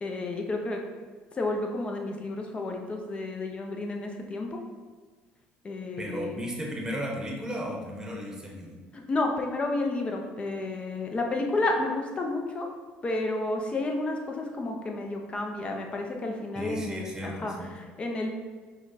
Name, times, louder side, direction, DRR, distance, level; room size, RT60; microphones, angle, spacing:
voice 1, 0.0-0.8 1.3-4.6 5.6-6.4 8.9-12.7 13.0-18.3, left 2 dB, 30° left, 2 dB, 0.7 m, -31 dB
voice 2, 6.0-8.7 16.5-17.7, equal, 15° right, -1 dB, 1.0 m, -35 dB
5.1 x 2.3 x 4.0 m, 1.4 s
supercardioid pair, 95°, 4 cm